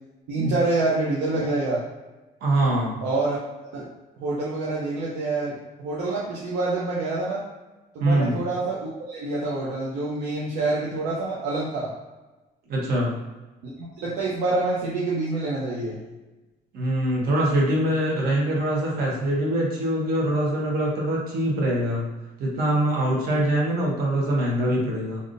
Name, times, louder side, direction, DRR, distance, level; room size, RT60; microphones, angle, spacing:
voice 1, 0.3-1.8 3.0-3.4 3.7-3.9 4.2-7.4 7.9-11.9 13.6-16.0, right 2 dB, 80° right, -5 dB, 0.7 m, -27 dB
voice 2, 2.4-2.9 8.0-8.4 12.7-13.1 16.7-22.1 22.4-25.2, right 1 dB, 65° right, -3 dB, 1.1 m, -23 dB
3.4 x 2.6 x 2.5 m, 1.1 s
cardioid pair, 110°, 17 cm